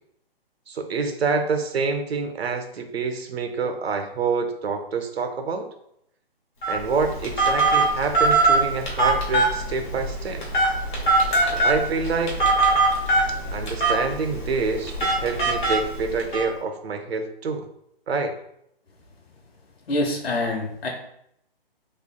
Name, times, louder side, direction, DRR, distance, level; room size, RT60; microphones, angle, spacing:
voice 1, 0.7-5.7 6.7-10.4 11.4-12.5 13.3-17.7 18.1-18.4, right 4 dB, 85° right, 6 dB, 0.6 m, -27 dB
Telephone, 6.6-16.4, right 2 dB, 50° left, 1.3 m, -22 dB
voice 2, 19.9-20.9, left 1 dB, 75° left, 1 dB, 1.1 m, -25 dB
3.7 x 3.2 x 2.2 m, 0.75 s
hypercardioid pair, 170°, 30 cm